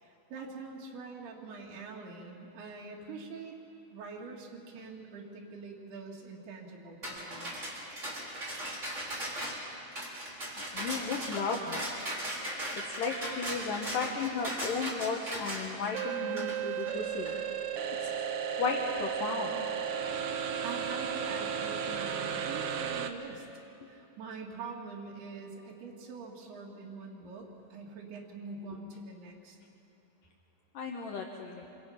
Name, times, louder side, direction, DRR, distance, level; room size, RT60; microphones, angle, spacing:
voice 1, 0.0-3.6 3.9-7.7 20.6-29.6, right 4 dB, 80° right, -2 dB, 4.2 m, -44 dB
sound 1, 7.0-17.4, right 1 dB, 20° right, 4.4 m, -38 dB
voice 2, 10.7-11.8 12.9-17.4 18.6-19.6 30.7-31.6, left 4 dB, 65° left, 0 dB, 2.7 m, -34 dB
sound 2, 15.9-23.1, right 7 dB, 65° right, 2.1 m, -34 dB
27.0 x 26.5 x 5.9 m, 2.8 s
omnidirectional pair, 4.5 m